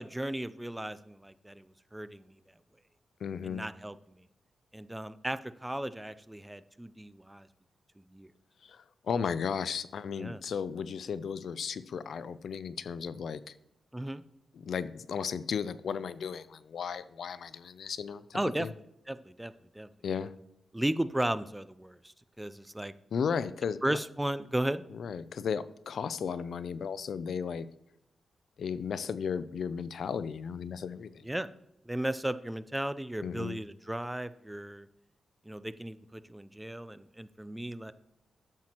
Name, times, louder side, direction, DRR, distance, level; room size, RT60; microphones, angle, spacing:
voice 1, 0.0-1.7 1.9-2.4 3.4-4.0 4.7-7.5 8.1-8.3 10.1-10.4 13.9-14.2 18.3-18.7 19.1-19.9 20.7-22.9 23.8-24.8 31.2-31.5 31.9-34.9 35.5-37.9, right 1 dB, 10° right, 14 dB, 0.4 m, -35 dB
voice 2, 3.2-3.7 8.6-13.5 14.5-18.7 20.0-20.3 23.1-24.0 24.9-27.7 28.6-31.2 33.2-33.6, left 6 dB, 70° left, 15 dB, 0.4 m, -35 dB
11.5 x 7.5 x 3.0 m, 0.81 s
cardioid pair, 100°, 0 cm